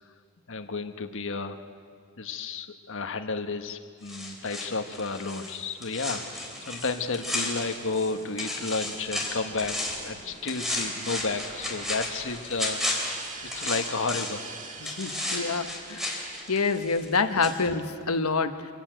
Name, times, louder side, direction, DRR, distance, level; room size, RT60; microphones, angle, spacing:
voice 1, 0.5-1.6 2.2-13.1 13.4-14.5, left 4 dB, 65° left, 7 dB, 1.4 m, -32 dB
sound 1, 4.1-8.1 8.4-10.1 10.5-14.5 14.8-17.2 17.4-17.5, left 1 dB, ahead, 3.6 m, -33 dB
sound 2, 6.1-18.1, right 3 dB, 35° right, 2.0 m, -46 dB
voice 2, 14.8-16.1 16.5-18.7, left 4 dB, 90° left, 8 dB, 1.2 m, -27 dB
25.0 x 15.5 x 9.1 m, 2.1 s
head